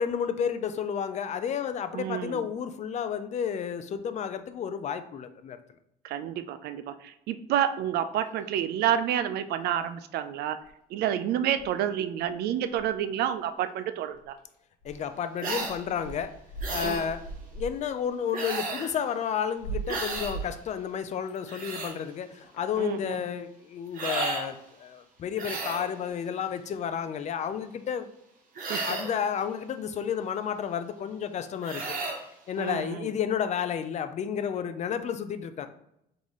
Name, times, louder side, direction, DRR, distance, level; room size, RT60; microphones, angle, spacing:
voice 1, 0.0-5.6 14.8-16.3 16.7-17.2 17.5-28.1 28.9-32.0 32.5-35.7, left 8 dB, 45° left, 10 dB, 0.4 m, -31 dB
voice 2, 1.9-2.5 6.0-10.6 10.9-14.4 16.8-17.0 22.8-23.2 28.7-28.8 32.6-33.1, right 10 dB, 75° right, 10 dB, 0.4 m, -29 dB
sound 1, 9.1-9.2 9.6-10.2 10.6-10.7 11.2-11.3 11.5-11.7 12.2-13.0 13.3-13.8 14.1-14.6 14.8-15.1 15.4-17.8 18.1-18.2 19.0-20.7 21.4-21.9 22.4-22.9 25.2-26.1, right 3 dB, 75° left, 1.2 m, -41 dB
sound 2, 15.4-15.8 16.6-17.1 18.3-18.9 19.9-20.4 21.3-21.9 23.9-24.5 25.4-25.9 28.6-29.2 31.6-32.2, right 3 dB, 55° right, 1.0 m, -33 dB
3.9 x 3.8 x 3.0 m, 0.79 s
cardioid pair, 110°, 17 cm